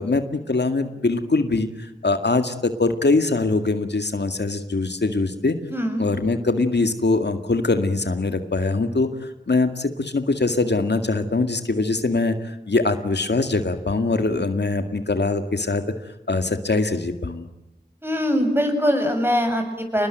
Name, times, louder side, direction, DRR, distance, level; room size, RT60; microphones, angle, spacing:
voice 1, 0.0-5.6 6.0-15.8 16.3-17.5, left 3 dB, 75° left, 7 dB, 2.1 m, -22 dB
voice 2, 5.7-6.0 18.0-20.1, equal, 10° right, 5 dB, 7.5 m, -22 dB
28.5 x 20.5 x 9.2 m, 0.95 s
wide cardioid pair, 50°, 18 cm